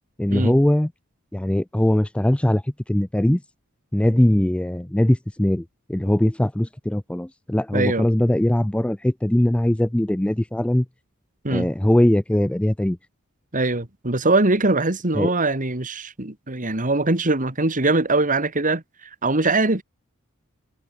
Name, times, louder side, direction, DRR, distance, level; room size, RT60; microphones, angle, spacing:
voice 1, 0.2-0.9 1.3-2.6 2.9-3.4 3.9-5.6 5.9-10.8 11.5-13.0 15.2-15.3, left 1 dB, 5° left, 0.4 m, -20 dB
voice 2, 7.7-8.1 11.4-11.7 13.5-18.8 19.2-19.8, right 2 dB, 40° right, 2.5 m, -22 dB
head